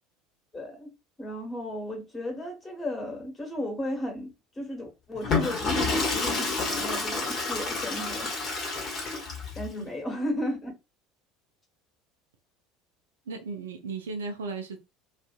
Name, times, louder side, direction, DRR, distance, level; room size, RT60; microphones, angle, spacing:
voice 1, 0.5-8.3 9.5-10.7, left 1 dB, 15° left, 1.3 m, -34 dB
Water / Toilet flush, 5.1-9.7, left 3 dB, 40° left, 1.0 m, -29 dB
voice 2, 13.3-14.8, right 4 dB, 70° right, 0.4 m, -35 dB
2.5 x 2.4 x 2.4 m
figure-of-eight pair, 65°, 0 cm